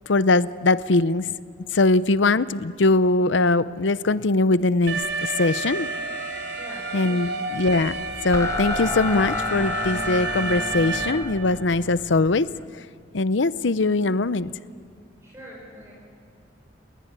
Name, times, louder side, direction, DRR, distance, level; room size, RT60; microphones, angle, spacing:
voice 1, 0.1-1.3 1.7-5.9 6.9-8.0 8.2-12.5 13.1-14.5, left 3 dB, 75° left, 15 dB, 0.7 m, -21 dB
Alarm, 4.9-11.1, right 3 dB, 75° right, 4.3 m, -30 dB
voice 2, 6.6-7.4 9.9-10.1 15.2-15.9, equal, 15° right, -4 dB, 6.2 m, -44 dB
sound 1, 7.9-12.7, left 3 dB, 15° left, 0.9 m, -31 dB
30.0 x 19.5 x 9.8 m, 2.2 s
head